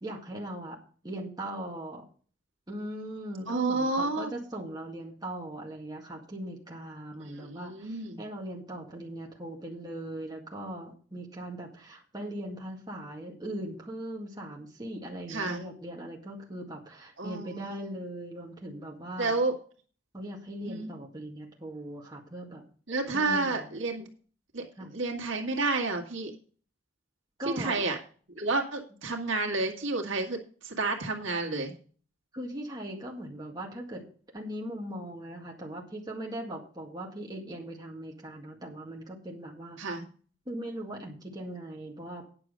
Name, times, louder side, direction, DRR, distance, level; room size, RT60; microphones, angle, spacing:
voice 1, 0.0-0.8 1.0-2.0 2.7-19.3 20.1-22.7 23.1-23.7 24.8-24.9 27.4-27.8 32.3-34.1 34.3-39.8 40.5-42.2, right 1 dB, 20° right, -2 dB, 2.0 m, -39 dB
voice 2, 3.5-4.3 7.4-8.2 15.3-15.6 17.2-17.7 19.2-19.5 20.6-20.9 22.9-24.1 24.5-24.7 24.9-26.3 27.4-28.0 28.4-31.7 39.8-40.1, right 3 dB, 90° right, 1 dB, 1.8 m, -30 dB
9.6 x 6.2 x 6.7 m, 0.42 s
head